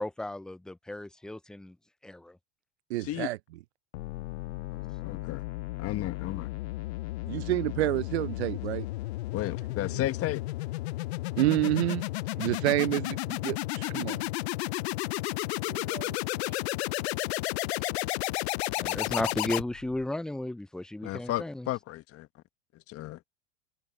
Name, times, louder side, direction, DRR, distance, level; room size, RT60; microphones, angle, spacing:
voice 1, 0.0-1.8 2.0-2.4 16.8-16.9 18.8-21.7, left 1 dB, ahead, 0.3 m, -34 dB
voice 2, 2.9-3.4 7.3-8.9 11.4-12.1 12.4-14.3 15.6-16.6, right 17 dB, 85° right, 0.5 m, -29 dB
sound 1, 3.9-20.0, left 19 dB, 80° left, 0.5 m, -33 dB
voice 3, 4.7-5.4 5.8-6.5 9.3-10.4 21.0-22.4 22.7-23.2, left 15 dB, 45° left, 1.5 m, -34 dB
hypercardioid pair, 95°, 32 cm